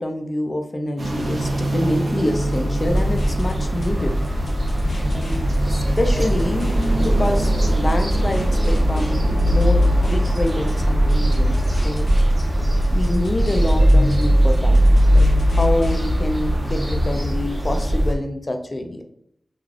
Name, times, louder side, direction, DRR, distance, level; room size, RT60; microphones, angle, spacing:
voice 1, 0.0-4.2 5.1-12.1 12.9-14.8 15.1-19.0, left 1 dB, 30° left, 4 dB, 0.4 m, -26 dB
sound 1, 1.0-17.3, right 1 dB, 80° right, 0.7 m, -29 dB
sound 2, 2.3-16.0, equal, 80° left, 0.6 m, -27 dB
sound 3, 2.8-18.1, equal, 20° right, 0.6 m, -19 dB
3.2 x 2.4 x 2.4 m, 0.71 s
wide cardioid pair, 115°, 0 cm